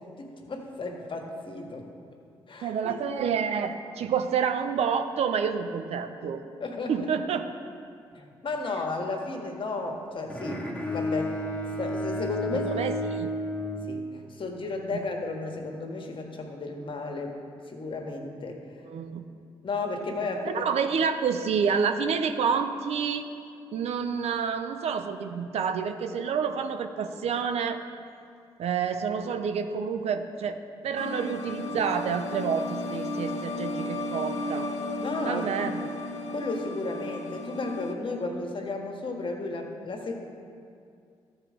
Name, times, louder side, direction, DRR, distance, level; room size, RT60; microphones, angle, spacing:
voice 1, 0.2-1.9 2.5-2.9 6.6-7.1 8.1-11.4 11.8-12.7 13.9-17.4 17.7-18.6 19.6-20.6 35.0-35.9 36.3-40.2, left 3 dB, 50° left, 2 dB, 1.4 m, -34 dB
voice 2, 2.6-6.4 6.9-7.4 12.5-13.3 14.9-15.0 18.8-19.3 20.4-23.3 23.7-27.8 28.6-30.6 30.8-34.7 35.2-35.8, right 6 dB, 70° right, 8 dB, 0.6 m, -28 dB
Bowed string instrument, 10.3-14.5, equal, 10° left, 1.3 m, -32 dB
sound 1, 30.9-37.9, left 1 dB, 90° left, 0.7 m, -34 dB
13.5 x 4.5 x 5.0 m, 2.3 s
supercardioid pair, 50°, 11 cm